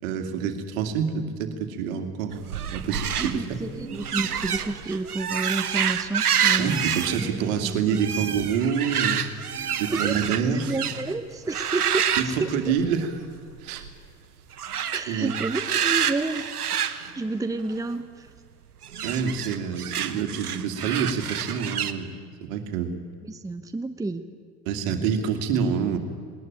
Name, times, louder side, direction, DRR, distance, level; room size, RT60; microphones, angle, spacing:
voice 1, 0.0-3.6 6.6-9.3 9.7-10.8 12.2-13.2 13.6-13.8 15.1-15.3 19.0-22.9 24.7-26.0, right 7 dB, 60° right, 7 dB, 2.4 m, -27 dB
sound 1, 2.3-11.1 11.5-13.2 13.5-13.9 14.5-17.9 18.8-21.9, right 8 dB, 80° right, 1.1 m, -28 dB
voice 2, 3.2-6.7 7.3-8.0 9.9-10.2 10.5-12.5 14.9-16.8 17.1-18.3 23.2-24.2, right 2 dB, 10° right, 9 dB, 1.0 m, -30 dB
20.0 x 19.5 x 9.0 m, 2.1 s
figure-of-eight pair, 70°, 45 cm